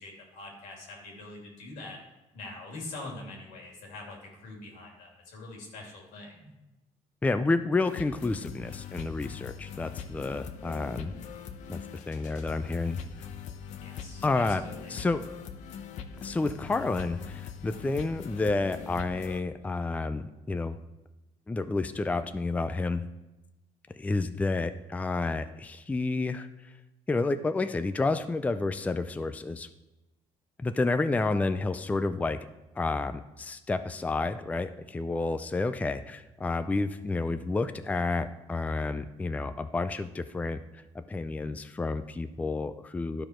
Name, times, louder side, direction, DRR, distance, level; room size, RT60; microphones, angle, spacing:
voice 1, 0.0-2.0 2.3-4.2 4.4-6.5 13.8-14.9, left 2 dB, 90° left, 0 dB, 2.6 m, -44 dB
voice 2, 7.2-11.1 11.7-11.8 12.1-13.0 14.2-14.6 14.9-15.2 16.2-20.8 21.5-23.1 24.0-26.5 27.1-29.7 30.6-32.4 32.8-43.3, left 3 dB, 10° left, 10 dB, 0.4 m, -30 dB
sound 1, 7.8-19.4, left 7 dB, 75° left, 0.8 m, -42 dB
11.5 x 4.9 x 4.4 m, 1.0 s
cardioid pair, 110°, 13 cm